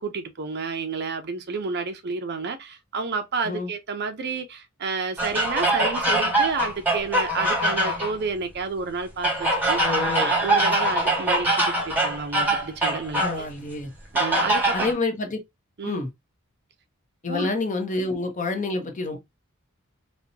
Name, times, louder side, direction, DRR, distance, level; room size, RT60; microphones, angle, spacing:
voice 1, 0.0-13.5 14.1-15.0 15.8-16.0 17.3-17.5, right 4 dB, 50° right, 0.6 m, -30 dB
sound 1, 5.2-8.1 9.2-13.4 14.1-14.9, right 1 dB, 10° right, 1.4 m, -23 dB
voice 2, 9.8-10.3 13.2-13.9 14.7-15.4 15.8-16.1 17.2-19.2, left 3 dB, 35° left, 0.8 m, -28 dB
4.2 x 2.2 x 2.7 m
head